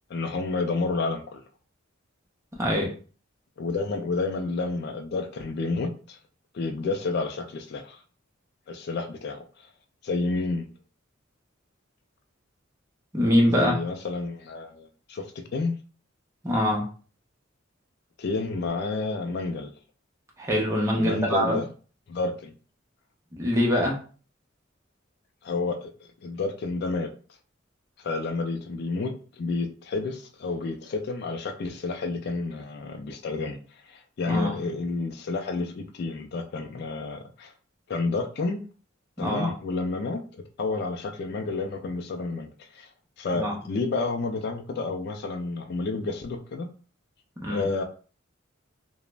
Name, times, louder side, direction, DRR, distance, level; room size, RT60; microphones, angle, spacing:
voice 1, 0.1-1.4 3.6-6.2 6.5-8.0 8.7-9.7 10.0-10.7 13.5-15.7 18.2-19.7 20.9-21.7 22.1-22.5 25.4-27.1 28.0-37.5 37.9-38.6 39.2-42.9 43.2-46.7 47.5-47.8, left 3 dB, 55° left, 5 dB, 0.3 m, -30 dB
voice 2, 2.5-2.9 13.1-13.7 16.4-16.9 20.4-21.6 23.3-24.0 34.3-34.5 39.2-39.5 43.3-43.5 47.4-47.7, equal, 15° right, -1 dB, 0.6 m, -24 dB
2.4 x 2.0 x 3.1 m, 0.39 s
head